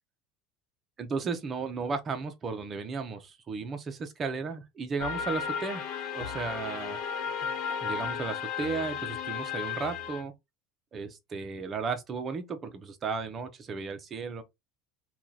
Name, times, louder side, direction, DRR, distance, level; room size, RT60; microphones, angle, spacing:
voice 1, 1.0-5.8 6.1-7.0 7.8-10.3 10.9-14.4, right 4 dB, 30° right, 0.7 m, -34 dB
sound 1, 5.0-10.2, left 7 dB, 55° left, 1.0 m, -34 dB
2.9 x 2.4 x 3.9 m
supercardioid pair, 125°, 0 cm